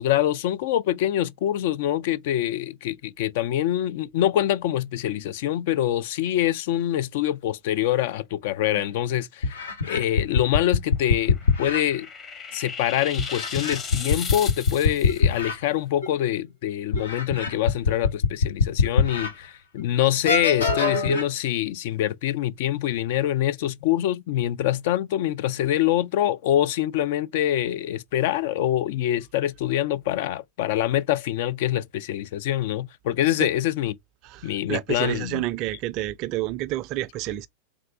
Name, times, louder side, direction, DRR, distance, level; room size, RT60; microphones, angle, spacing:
voice 1, 0.0-12.1 12.5-33.9 34.4-35.4, left 12 dB, 50° left, 0.3 m, -25 dB
sound 1, 8.7-8.8 9.4-11.8 13.2-15.6 16.0-16.1 16.9-19.3 19.8-19.9 20.2-21.2, left 4 dB, 70° left, 0.8 m, -23 dB
sound 2, 11.0-15.2, left 5 dB, 25° left, 0.9 m, -36 dB
voice 2, 34.2-37.5, right 15 dB, 40° right, 0.3 m, -29 dB
3.5 x 2.6 x 3.4 m
figure-of-eight pair, 90°, 0 cm